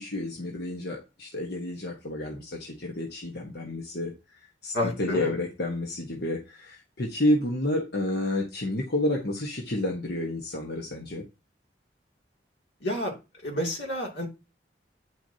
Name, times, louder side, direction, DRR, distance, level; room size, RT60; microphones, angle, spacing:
voice 1, 0.0-4.1 4.6-11.2, left 1 dB, 65° left, 0 dB, 1.4 m, -30 dB
voice 2, 4.7-5.3 12.8-13.1 13.4-14.3, left 1 dB, 90° left, 1 dB, 2.8 m, -29 dB
9.5 x 6.2 x 2.9 m, 0.28 s
head